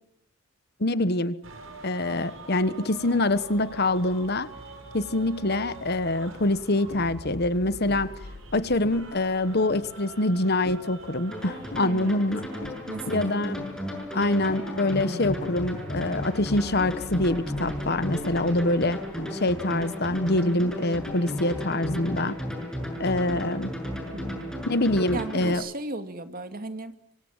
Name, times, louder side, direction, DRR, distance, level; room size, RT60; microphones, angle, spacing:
voice 1, 0.8-1.4 1.8-4.5 4.9-8.1 8.5-12.4 13.1-13.6 14.1-19.0 19.3-22.4 23.0-23.7 24.7-25.6, left 2 dB, 55° left, 14 dB, 1.3 m, -25 dB
sound 1, 1.4-11.7, right 2 dB, 90° right, 6.8 m, -45 dB
sound 2, 6.9-10.0 10.6-11.2 11.7-12.2 12.6-13.1 13.6-14.1 14.4-19.7 20.1-20.8 21.1-21.7, left 2 dB, 75° left, 1.1 m, -42 dB
sound 3, 11.3-25.5, equal, 5° left, 7.4 m, -34 dB
voice 2, 11.8-12.2 12.5-13.4 24.1-24.6 25.1-26.9, right 2 dB, 45° right, 8 dB, 2.5 m, -36 dB
26.5 x 25.5 x 7.4 m, 0.77 s
head